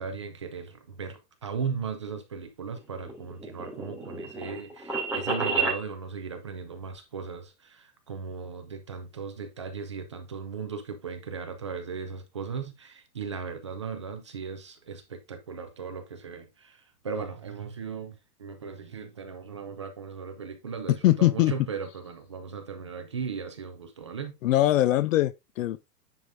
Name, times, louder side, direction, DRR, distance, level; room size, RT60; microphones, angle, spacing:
voice 1, 0.0-24.4, right 6 dB, 20° right, 0.3 m, -37 dB
sound 1, 2.8-5.8, right 4 dB, 5° right, 2.7 m, -31 dB
voice 2, 21.0-21.5 24.4-25.9, left 15 dB, 55° left, 0.6 m, -22 dB
9.6 x 5.0 x 2.6 m
hypercardioid pair, 150°, 48 cm